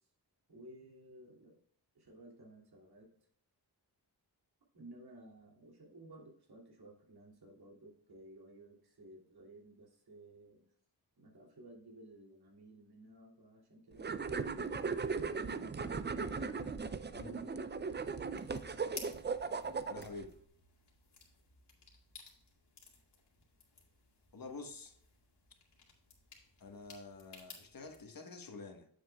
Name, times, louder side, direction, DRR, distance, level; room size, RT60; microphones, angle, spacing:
voice 1, 0.5-1.6 1.9-3.1 4.7-10.7 11.2-16.7 17.2-17.7 17.9-18.4, right 1 dB, 65° right, -1 dB, 2.8 m, -56 dB
sound 1, 14.0-20.3, right 5 dB, 25° right, 0.4 m, -38 dB
sound 2, 18.3-28.0, left 5 dB, 75° left, 2.2 m, -56 dB
voice 2, 19.9-20.4 24.3-25.0 26.6-28.9, left 3 dB, 55° left, 5 dB, 1.4 m, -48 dB
9.4 x 7.2 x 2.3 m, 0.63 s
wide cardioid pair, 100°, 41 cm